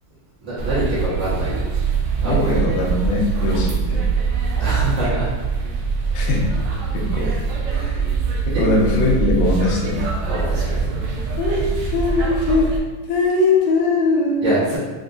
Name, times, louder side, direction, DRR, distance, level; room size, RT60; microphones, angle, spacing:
voice 1, 0.4-1.6 2.2-2.6 4.6-5.3 7.6-8.1 8.5-8.7 10.2-10.9 14.4-14.8, right 1 dB, 60° right, -13 dB, 1.1 m, -25 dB
sound 1, 0.6-12.8, right 5 dB, 75° right, 2.1 m, -23 dB
voice 2, 2.2-4.0 6.1-6.5 6.9-7.3 8.5-10.1 11.4-11.7 11.9-12.7 13.1-14.5, left 3 dB, 85° left, -2 dB, 2.3 m, -20 dB
7.4 x 2.6 x 2.6 m, 1.3 s
omnidirectional pair, 4.2 m